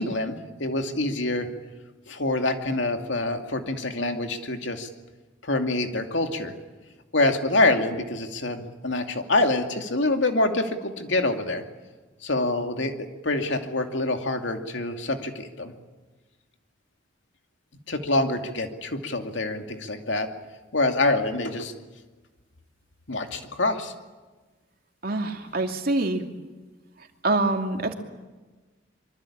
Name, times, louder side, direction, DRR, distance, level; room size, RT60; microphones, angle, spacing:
voice 1, 0.0-1.5 2.1-4.9 5.4-6.5 7.1-11.6 12.2-15.7 17.9-20.3 20.7-21.7 23.1-23.9, left 2 dB, 75° left, 5 dB, 2.5 m, -26 dB
voice 2, 25.0-26.2 27.2-27.9, right 2 dB, 50° right, 4 dB, 2.7 m, -25 dB
25.0 x 24.5 x 8.8 m, 1.3 s
head